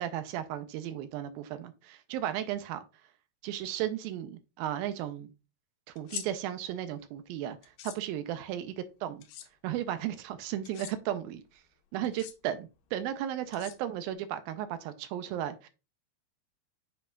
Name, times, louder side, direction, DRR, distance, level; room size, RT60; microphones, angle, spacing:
voice 1, 0.0-2.8 3.4-5.3 5.9-7.6 7.8-8.7 9.0-9.2 9.6-11.4 11.9-15.7, right 11 dB, 80° right, 2.2 m, -35 dB
sound 1, 6.0-6.3 7.6-8.0 9.2-9.5 10.6-10.9 12.0-12.3 13.5-14.1, left 10 dB, 85° left, 2.9 m, -42 dB
7.7 x 5.4 x 2.4 m
omnidirectional pair, 4.6 m